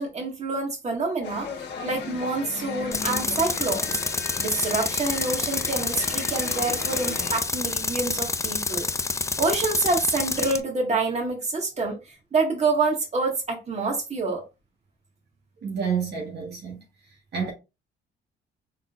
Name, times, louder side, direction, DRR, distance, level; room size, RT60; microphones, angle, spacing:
voice 1, 0.0-1.5 1.8-4.0 4.4-8.9 9.4-14.4, right 3 dB, 35° right, 1.7 m, -27 dB
sound 1, 1.2-7.4, left 5 dB, 60° left, 1.2 m, -36 dB
Tools, 2.9-10.6, left 3 dB, 15° left, 0.4 m, -28 dB
voice 2, 15.6-16.8 17.3-17.5, right 6 dB, 55° right, 1.4 m, -29 dB
3.8 x 3.8 x 2.5 m
cardioid pair, 90°, 20 cm